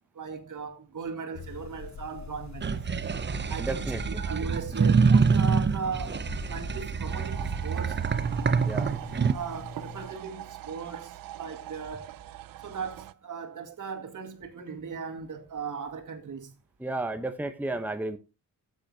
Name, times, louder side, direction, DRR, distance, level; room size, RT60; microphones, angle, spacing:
voice 1, 0.1-2.9 3.5-6.2 6.5-8.1 9.3-12.2 12.6-16.5, right 6 dB, 65° right, 2.2 m, -38 dB
sound 1, 1.3-10.1, left 5 dB, 55° left, 1.0 m, -42 dB
sound 2, 2.6-9.3, right 5 dB, 35° right, 0.7 m, -26 dB
voice 2, 3.6-4.0 8.6-8.9 16.8-18.2, right 2 dB, 5° right, 0.9 m, -32 dB
sound 3, 7.1-13.1, right 14 dB, 90° right, 0.6 m, -43 dB
12.5 x 9.2 x 2.8 m
cardioid pair, 80°, 33 cm